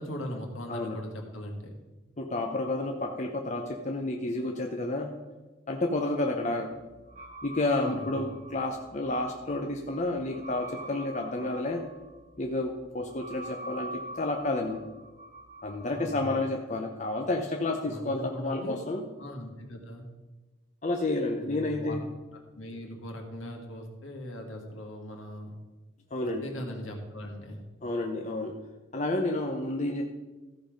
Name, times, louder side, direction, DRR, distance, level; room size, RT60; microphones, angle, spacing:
voice 1, 0.0-1.7 7.8-8.2 15.9-16.6 17.9-18.8 19.2-20.0 21.4-22.1 22.5-25.6 26.2-27.6, equal, 75° left, 2 dB, 1.8 m, -39 dB
voice 2, 2.2-5.1 5.7-6.7 7.4-11.8 12.4-14.8 15.6-19.0 20.8-22.0 26.1-26.5 27.8-28.6 28.9-30.0, left 2 dB, 35° left, 2 dB, 0.7 m, -30 dB
sound 1, 6.7-16.2, right 1 dB, 35° right, 1.9 m, -45 dB
14.0 x 5.4 x 5.1 m, 1.2 s
head